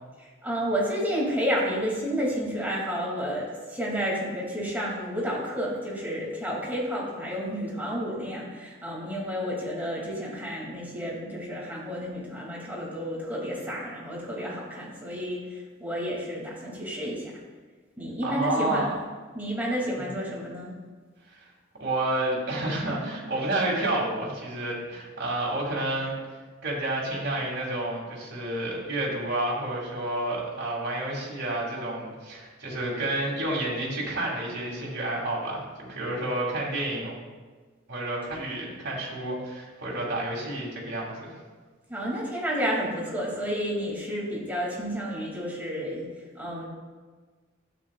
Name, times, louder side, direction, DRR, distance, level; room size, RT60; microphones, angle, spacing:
voice 1, 0.2-17.3 18.0-18.9 19.3-20.7 41.9-46.0 46.3-46.6, equal, 10° right, -4 dB, 2.6 m, -31 dB
voice 2, 18.2-18.9 20.0-20.1 21.3-21.4 21.8-26.2 26.6-37.1 37.9-41.3, right 1 dB, 55° right, -4 dB, 2.6 m, -30 dB
12.0 x 8.7 x 2.5 m, 1.4 s
head